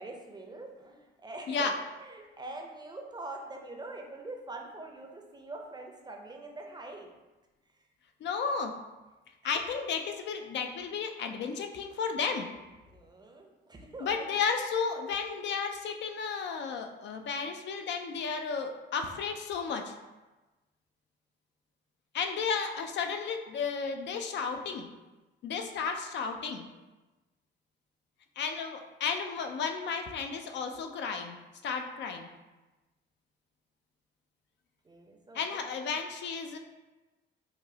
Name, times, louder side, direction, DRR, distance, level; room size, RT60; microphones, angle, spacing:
voice 1, 0.0-7.1 12.9-14.3 34.8-35.7, right 2 dB, 20° right, 2 dB, 0.5 m, -44 dB
voice 2, 8.2-8.7 9.4-12.5 14.0-19.9 22.1-24.9 25.4-26.6 28.4-31.4 31.6-32.3 35.3-36.6, left 5 dB, 65° left, 5 dB, 0.4 m, -33 dB
4.9 x 2.0 x 2.7 m, 1.1 s
cardioid pair, 90°, 20 cm